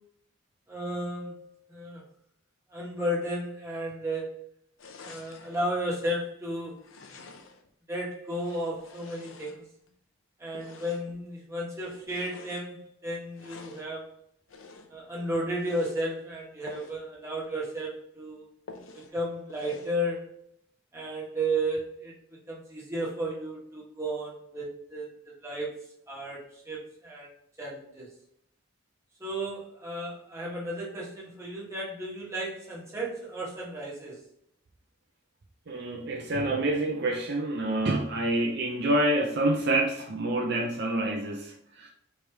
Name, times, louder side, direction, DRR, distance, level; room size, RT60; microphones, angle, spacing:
voice 1, 0.7-1.4 1.7-2.0 2.7-4.3 5.0-7.0 7.9-9.6 10.4-14.1 14.9-18.5 18.9-20.3 20.9-22.1 22.5-25.7 26.1-27.3 27.6-28.1 29.2-34.2, right 1 dB, 15° right, -5 dB, 1.3 m, -33 dB
sound 1, 4.8-5.6 6.8-7.7 8.3-9.9 10.5-11.2 11.8-12.7 13.3-13.9 14.5-15.0 15.5-16.0 16.6-17.0 17.4-17.5 17.9-18.0 18.7-19.2 19.5-20.0, left 3 dB, 75° left, 0.6 m, -49 dB
voice 2, 35.7-41.9, right 1 dB, 55° right, 1 dB, 0.5 m, -27 dB
4.7 x 3.3 x 3.3 m, 0.73 s
head